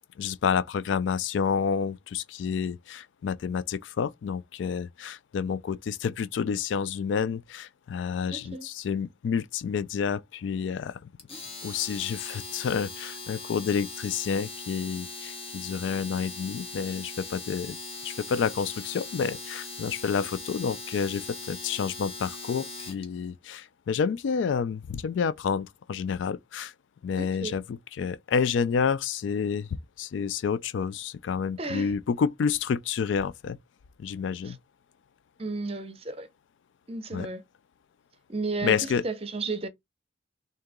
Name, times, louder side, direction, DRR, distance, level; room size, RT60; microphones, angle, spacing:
voice 1, 0.2-11.1 11.6-17.8 18.0-26.7 27.0-29.7 30.0-33.6 34.0-34.6 37.1-37.3 38.6-39.1, left 6 dB, 75° left, 0.3 m, -29 dB
voice 2, 8.3-8.7 27.2-27.5 31.6-31.9 34.4-34.6 35.4-36.3 36.9-37.4 38.3-39.7, right 3 dB, 30° right, 0.7 m, -33 dB
Domestic sounds home sounds, 11.2-23.0, left 3 dB, 30° left, 1.2 m, -40 dB
3.7 x 2.8 x 3.5 m
head